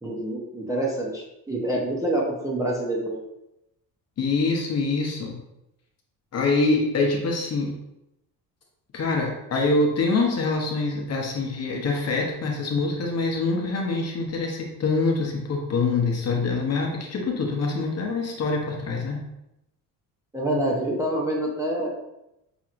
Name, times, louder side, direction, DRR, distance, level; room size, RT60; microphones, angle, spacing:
voice 1, 0.0-3.2 20.3-21.9, right 1 dB, 10° right, -4 dB, 0.8 m, -26 dB
voice 2, 4.2-5.4 6.3-7.7 8.9-19.2, left 3 dB, 45° left, 0 dB, 0.9 m, -25 dB
5.9 x 2.8 x 2.5 m, 0.87 s
cardioid pair, 115°, 36 cm